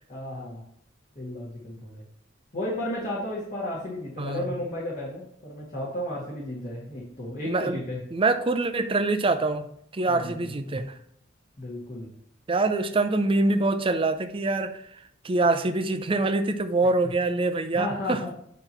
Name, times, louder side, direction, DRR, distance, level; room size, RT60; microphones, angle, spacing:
voice 1, 0.1-0.6 1.2-2.0 2.5-8.0 10.1-10.5 11.6-12.1 17.7-18.3, left 1 dB, 40° left, 1.8 m, -33 dB
voice 2, 7.5-7.8 8.1-9.7 9.9-10.9 12.5-18.2, right 2 dB, 25° right, 0.5 m, -25 dB
8.9 x 3.1 x 5.7 m
head